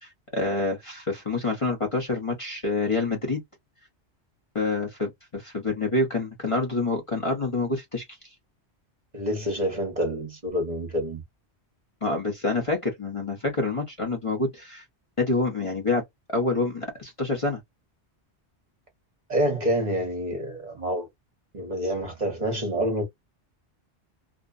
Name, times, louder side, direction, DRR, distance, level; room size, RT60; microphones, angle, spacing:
voice 1, 0.0-3.4 4.5-8.0 12.0-14.8 15.2-16.0 16.3-17.6, left 3 dB, 30° left, 0.8 m, -27 dB
voice 2, 9.1-11.2 19.3-21.1 21.5-23.0, equal, 40° right, 1.0 m, -27 dB
2.6 x 2.1 x 2.2 m
omnidirectional pair, 1.1 m